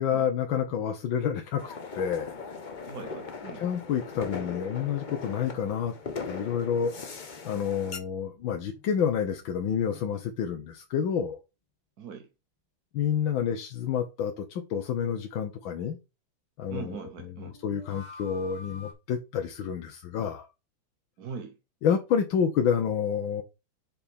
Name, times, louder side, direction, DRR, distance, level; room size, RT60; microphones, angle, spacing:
voice 1, 0.0-2.3 3.5-5.9 6.2-6.9 7.4-11.4 12.9-16.0 16.6-17.0 17.6-20.5 21.8-23.4, left 8 dB, 80° left, 1.7 m, -29 dB
sound 1, 1.6-8.0, left 4 dB, 40° left, 0.7 m, -39 dB
voice 2, 2.9-3.6 12.0-12.3 16.7-17.6 21.2-21.6, right 6 dB, 55° right, 1.4 m, -41 dB
sound 2, 17.4-18.9, left 3 dB, 20° left, 2.7 m, -53 dB
7.0 x 5.3 x 3.5 m
omnidirectional pair, 2.1 m